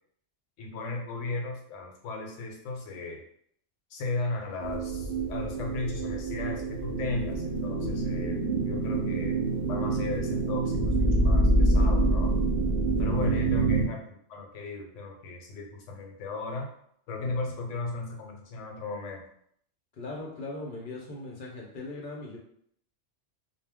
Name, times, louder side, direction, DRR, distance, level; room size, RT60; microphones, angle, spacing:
voice 1, 0.6-3.2 3.9-8.4 8.6-9.4 9.7-12.4 13.0-16.7 17.1-19.2, left 3 dB, 80° left, 1 dB, 1.0 m, -36 dB
sound 1, 4.6-13.8, right 2 dB, 60° right, 0.7 m, -26 dB
voice 2, 20.0-22.4, left 2 dB, 50° left, -2 dB, 0.7 m, -39 dB
2.2 x 2.0 x 3.4 m, 0.67 s
omnidirectional pair, 1.3 m